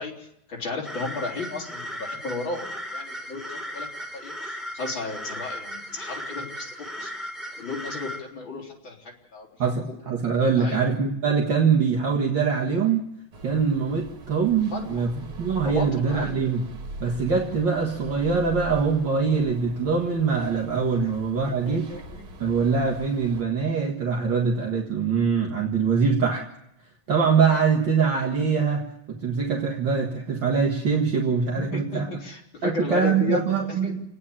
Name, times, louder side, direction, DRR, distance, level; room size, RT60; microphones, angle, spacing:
voice 1, 0.0-3.9 4.1-6.7 7.0-7.1 7.6-9.0 9.3-9.5 10.6-10.8 14.7-15.0 15.7-16.4 21.0-21.1 21.4-22.2 31.7-33.4 33.7-33.9, left 3 dB, 65° left, -2 dB, 4.7 m, -33 dB
sound 1, 0.8-8.2, equal, ahead, 3.5 m, -36 dB
voice 2, 9.6-13.1 13.4-16.7 17.0-21.9 22.4-26.5 27.1-32.1 32.6-34.0, right 5 dB, 65° right, 0 dB, 2.3 m, -23 dB
sound 2, 13.3-23.4, right 1 dB, 85° right, 2.7 m, -42 dB
28.0 x 9.8 x 10.0 m, 0.81 s
omnidirectional pair, 2.2 m